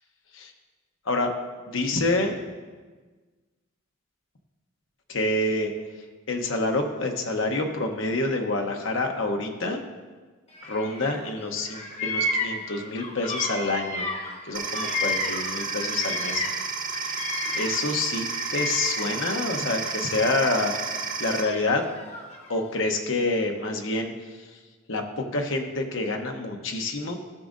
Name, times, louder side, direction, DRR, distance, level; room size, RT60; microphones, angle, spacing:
voice 1, 1.7-2.4 5.1-5.7 6.3-9.8 10.6-14.1 14.4-16.4 17.5-18.2 18.5-20.7 21.2-21.9 22.5-24.1 24.9-27.1, left 2 dB, 65° left, 3 dB, 0.9 m, -27 dB
Bird vocalization bird call bird song, 10.5-11.3 11.6-16.6 16.9-19.3 19.8-20.8 21.5-22.6, left 2 dB, 30° left, 0.9 m, -32 dB
sound 1, 14.5-21.4, right 5 dB, 40° right, 1.1 m, -31 dB
14.5 x 6.2 x 2.6 m, 1.4 s
head